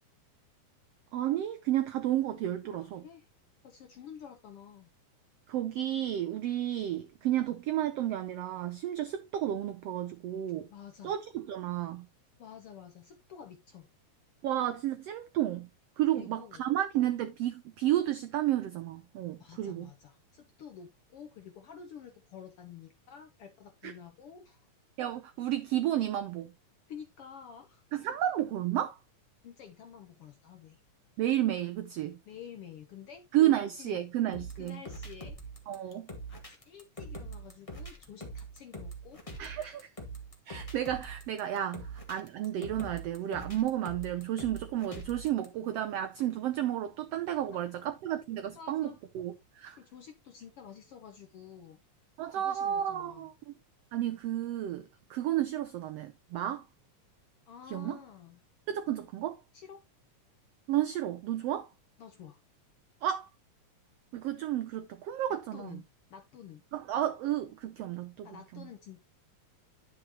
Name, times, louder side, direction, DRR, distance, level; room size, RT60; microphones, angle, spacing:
voice 1, 1.1-3.0 5.5-10.7 11.0-12.1 14.4-15.7 16.0-19.9 23.8-23.9 25.0-26.5 27.9-29.0 31.2-32.2 33.3-34.8 35.7-36.1 39.4-39.8 40.5-49.8 52.2-53.5 53.9-56.7 57.7-58.0 58.7-59.4 60.7-61.7 63.0-63.3 64.1-65.8 66.7-68.3 68.5-68.7, right 12 dB, 85° right, 1.4 m, -32 dB
voice 2, 2.7-3.3 3.6-4.9 10.7-11.2 12.4-13.9 16.1-16.7 19.4-24.7 26.9-27.8 29.4-30.8 32.3-33.2 33.8-34.1 34.6-35.4 35.7-35.8 36.3-39.8 48.5-49.0 49.7-51.8 52.3-53.3 57.5-58.4 59.5-59.8 62.0-62.4 65.3-66.6 68.2-69.0, left 8 dB, 70° left, 1.4 m, -50 dB
sound 1, 34.3-45.5, right 2 dB, 15° left, 1.2 m, -43 dB
10.5 x 6.3 x 2.9 m
omnidirectional pair, 3.6 m